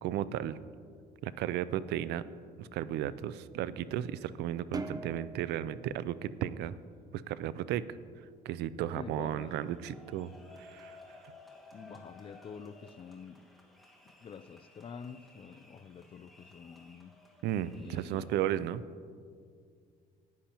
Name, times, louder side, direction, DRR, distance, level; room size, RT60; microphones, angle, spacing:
voice 1, 0.0-0.6 1.2-2.2 2.6-6.8 7.3-7.8 8.5-10.3 10.6-11.0 17.4-18.8, right 11 dB, 80° right, 0.4 m, -34 dB
sound 1, 4.7-7.3, right 2 dB, 20° right, 0.5 m, -43 dB
voice 2, 8.9-9.6 11.7-13.5 14.2-17.1 17.8-18.3, left 6 dB, 30° left, 0.4 m, -47 dB
sound 2, 9.4-18.3, left 2 dB, ahead, 1.6 m, -57 dB
15.0 x 10.0 x 2.9 m
cardioid pair, 110°, 17 cm